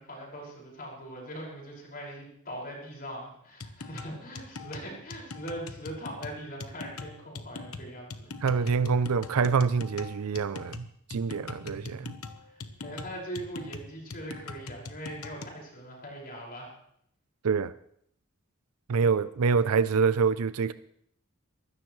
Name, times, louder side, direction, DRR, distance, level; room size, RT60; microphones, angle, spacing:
voice 1, 0.0-8.3 11.6-12.1 12.4-16.7, right 1 dB, 45° left, 5.5 m, -41 dB
sound 1, 3.6-15.6, left 3 dB, 75° left, 1.1 m, -42 dB
voice 2, 8.4-10.8 11.1-12.1 17.4-17.7 18.9-20.7, right 5 dB, 80° right, 0.5 m, -26 dB
22.5 x 16.5 x 3.2 m
head